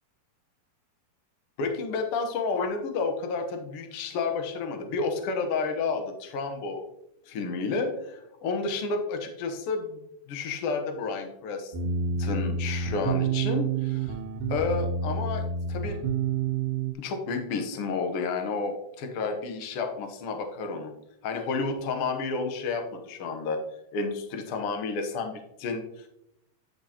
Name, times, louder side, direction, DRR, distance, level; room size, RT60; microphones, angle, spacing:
voice 1, 1.6-6.8 7.3-10.0 10.3-11.7 12.2-14.1 14.5-15.4 15.7-16.0 17.0-20.9 21.2-23.6 23.9-26.1, left 4 dB, 70° left, 5 dB, 1.3 m, -31 dB
sound 1, 11.7-16.9, right 5 dB, 85° right, 2.6 m, -28 dB
9.8 x 6.3 x 2.8 m, 0.81 s
omnidirectional pair, 3.9 m